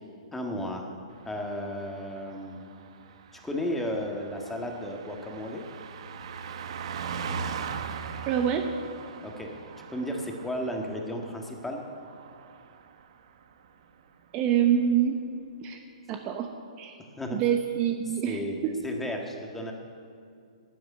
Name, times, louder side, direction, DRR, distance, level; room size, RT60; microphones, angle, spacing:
voice 1, 0.3-0.8 1.2-2.7 3.3-5.6 9.2-9.5 9.9-11.8 17.2-17.4 18.3-19.7, equal, 5° left, 1 dB, 1.6 m, -34 dB
Car passing by, 1.2-13.1 13.4-13.7, right 6 dB, 55° right, 1.0 m, -40 dB
voice 2, 8.3-8.7 14.3-15.2 15.6-15.8 16.1-16.5 16.8-17.0 17.3-18.7, right 9 dB, 30° right, 5 dB, 0.8 m, -26 dB
12.5 x 9.4 x 9.3 m, 2.4 s
hypercardioid pair, 150°, 4 cm